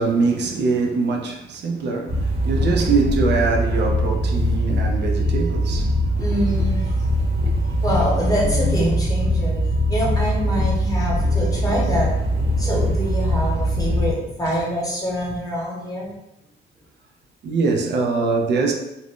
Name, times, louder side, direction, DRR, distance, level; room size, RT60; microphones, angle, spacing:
voice 1, 0.0-5.9 7.3-7.5 17.4-18.7, right 4 dB, 60° right, 0.5 m, -23 dB
sound 1, 2.1-14.1, equal, 30° right, 0.9 m, -22 dB
voice 2, 2.4-2.8 5.9-7.2 7.5-16.1, equal, 20° left, 1.1 m, -25 dB
2.5 x 2.1 x 3.5 m
cardioid pair, 90°, 20 cm